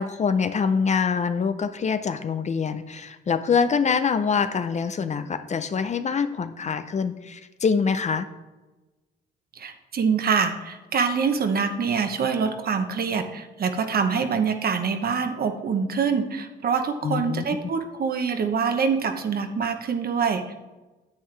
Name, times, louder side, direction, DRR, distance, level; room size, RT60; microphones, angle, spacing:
voice 1, 0.0-8.3 17.0-17.4, left 6 dB, 35° left, 11 dB, 0.5 m, -25 dB
voice 2, 9.6-20.5, right 6 dB, 50° right, 7 dB, 1.0 m, -25 dB
9.6 x 7.8 x 3.3 m, 1.1 s
cardioid pair, 90°, 20 cm